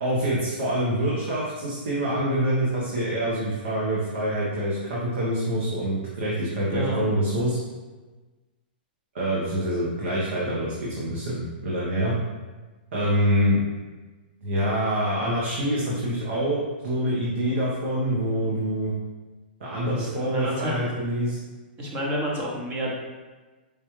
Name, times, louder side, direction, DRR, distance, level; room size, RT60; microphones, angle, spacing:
voice 1, 0.0-7.6 9.1-12.1 12.9-13.6 14.4-16.6 16.8-18.9 19.6-21.4, equal, 80° right, -7 dB, 1.1 m, -25 dB
voice 2, 19.8-20.8 21.8-22.9, equal, 25° right, -2 dB, 0.9 m, -29 dB
4.9 x 2.3 x 3.1 m, 1.3 s
hypercardioid pair, 150°, 6 cm